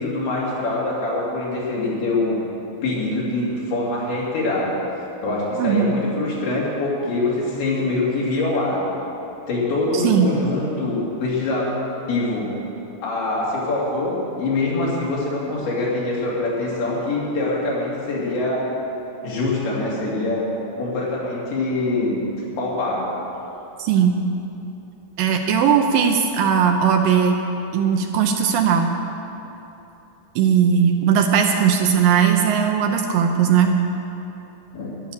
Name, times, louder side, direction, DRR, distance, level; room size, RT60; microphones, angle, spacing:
voice 1, 0.0-2.4 2.8-4.8 5.2-8.9 9.5-11.7 12.1-12.5 13.0-18.7 19.2-20.5 20.8-22.2 22.6-23.2 34.7-35.0, left 2 dB, 80° left, -6 dB, 4.7 m, -24 dB
voice 2, 5.6-5.9 9.9-10.3 23.8-24.2 25.2-27.4 27.7-29.0 30.4-33.7, right 7 dB, 80° right, 4 dB, 2.2 m, -18 dB
13.0 x 10.5 x 6.6 m, 2.9 s
omnidirectional pair, 4.4 m